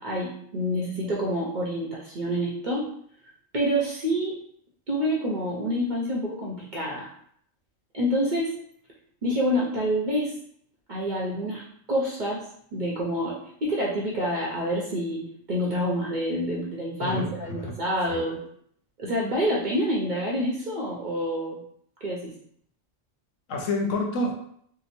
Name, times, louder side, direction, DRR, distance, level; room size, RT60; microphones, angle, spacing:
voice 1, 0.0-2.9 3.5-4.3 4.9-7.1 7.9-8.5 9.2-10.4 10.9-11.6 11.9-12.4 12.7-15.2 15.5-18.4 19.0-21.6 22.0-22.3, equal, 50° right, -4 dB, 0.6 m, -27 dB
voice 2, 17.0-17.8 18.1-18.3 23.5-24.3, left 2 dB, 75° left, 2 dB, 1.0 m, -29 dB
2.9 x 2.1 x 4.1 m, 0.66 s
omnidirectional pair, 1.3 m